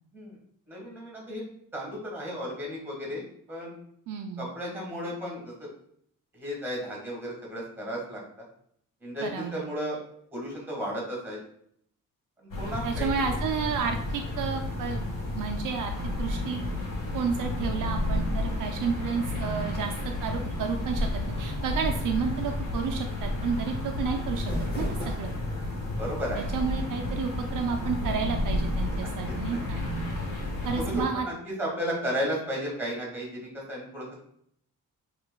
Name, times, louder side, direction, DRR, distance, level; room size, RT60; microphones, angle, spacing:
voice 1, 0.7-1.4 1.7-3.2 3.5-3.8 4.4-5.7 6.3-8.2 9.0-10.0 10.3-11.4 12.6-13.2 24.9-25.2 26.0-26.5 28.9-29.6 30.9-34.2, equal, 5° right, -2 dB, 1.6 m, -34 dB
voice 2, 4.1-4.5 9.2-9.5 12.8-15.1 15.3-16.7 17.1-19.9 20.2-21.1 21.4-25.3 26.3-29.8 30.6-31.3, right 6 dB, 65° right, 4 dB, 0.5 m, -31 dB
sound 1, 12.5-31.0, left 1 dB, 75° left, 1.6 m, -31 dB
sound 2, 24.1-25.7, equal, 30° left, 1.1 m, -35 dB
5.9 x 3.1 x 2.2 m, 0.67 s
wide cardioid pair, 160°, 34 cm